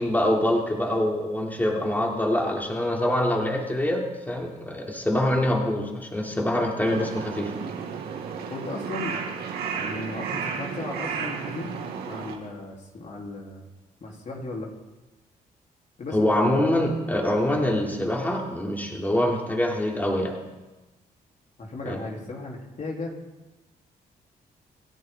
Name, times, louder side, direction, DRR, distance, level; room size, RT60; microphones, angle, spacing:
voice 1, 0.0-7.5 16.1-20.4 21.8-22.0, left 1 dB, 10° left, -1 dB, 3.3 m, -25 dB
voice 2, 6.6-7.1 8.5-9.2 9.7-11.8 12.1-13.7 14.0-14.7 16.0-16.6 21.6-23.1, left 2 dB, 50° left, -1 dB, 4.0 m, -36 dB
Crow, 6.8-12.3, right 6 dB, 85° right, 2.4 m, -33 dB
27.5 x 11.0 x 4.0 m, 1.1 s
cardioid pair, 80°, 16 cm